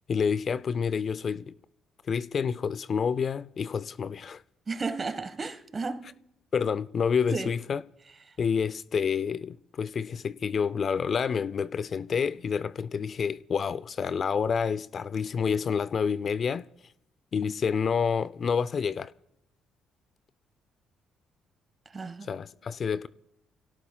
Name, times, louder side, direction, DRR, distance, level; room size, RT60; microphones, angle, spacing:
voice 1, 0.1-1.5 2.1-4.4 6.5-7.8 8.4-16.7 17.3-19.1 22.3-23.1, left 6 dB, 50° left, 0.4 m, -28 dB
voice 2, 4.7-6.1 7.3-7.5 8.3-8.4 21.8-22.3, right 4 dB, 35° right, 1.3 m, -33 dB
29.5 x 17.0 x 2.3 m
hypercardioid pair, 55°, 0 cm